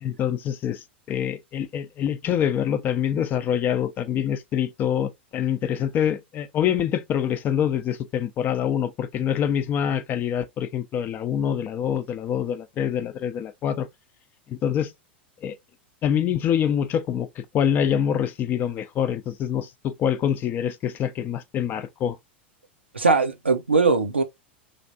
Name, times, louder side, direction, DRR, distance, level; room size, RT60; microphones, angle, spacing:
voice 1, 0.0-0.8 1.1-13.9 14.5-14.9 15.4-15.5 16.0-22.2, left 9 dB, 30° left, 0.5 m, -25 dB
voice 2, 22.9-24.2, right 4 dB, 90° right, 0.5 m, -20 dB
3.2 x 2.5 x 2.6 m
figure-of-eight pair, 90°, 6 cm